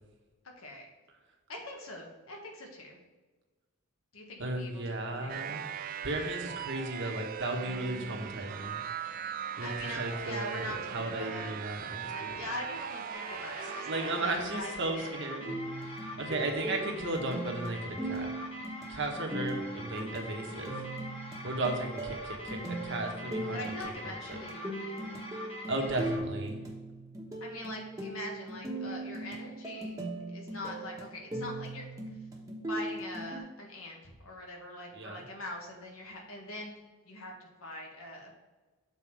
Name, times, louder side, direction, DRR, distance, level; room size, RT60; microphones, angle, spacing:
voice 1, 1.5-3.0 4.1-5.6 9.6-11.6 12.0-15.6 23.5-25.2 25.8-26.1 27.4-29.9 30.3-31.9 32.7-36.8 37.0-38.3, left 1 dB, 75° left, 0 dB, 1.7 m, -43 dB
voice 2, 4.4-5.6 6.0-8.8 9.6-12.4 13.9-15.5 16.2-18.3 18.9-20.8 21.4-23.6 24.3-24.4 25.7-26.6 34.9-35.2, right 2 dB, 55° right, 2 dB, 1.2 m, -35 dB
sound 1, 5.3-14.2, right 8 dB, 40° right, 0.3 m, -39 dB
sound 2, 13.1-26.2, left 1 dB, 25° left, 1.1 m, -44 dB
sound 3, 15.5-33.4, right 1 dB, 15° right, 1.1 m, -39 dB
7.1 x 4.1 x 4.8 m, 1.3 s
head